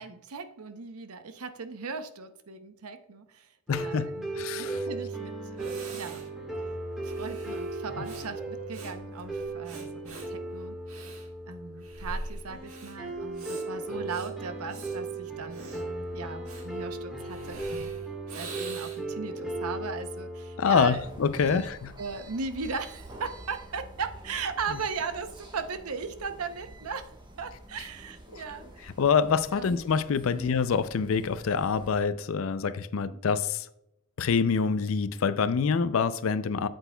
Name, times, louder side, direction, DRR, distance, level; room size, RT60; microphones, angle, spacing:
voice 1, 0.0-6.2 7.0-10.8 11.0-17.9 18.3-21.0 21.5-21.6 22.0-27.1 27.4-28.9 29.5-29.7 30.3-30.5 33.1-33.2, right 4 dB, 90° right, 0.7 m, -38 dB
voice 2, 3.7-4.1 4.4-4.8 20.6-21.9 28.3-28.4 29.0-33.7 34.2-36.7, left 6 dB, 65° left, 0.4 m, -26 dB
sound 1, 3.7-21.7, right 2 dB, ahead, 1.6 m, -37 dB
Breathing, 5.1-5.2 5.6-19.2, right 2 dB, 70° right, 1.6 m, -45 dB
sound 2, 20.9-32.0, right 1 dB, 20° right, 1.2 m, -48 dB
8.0 x 7.9 x 2.3 m
head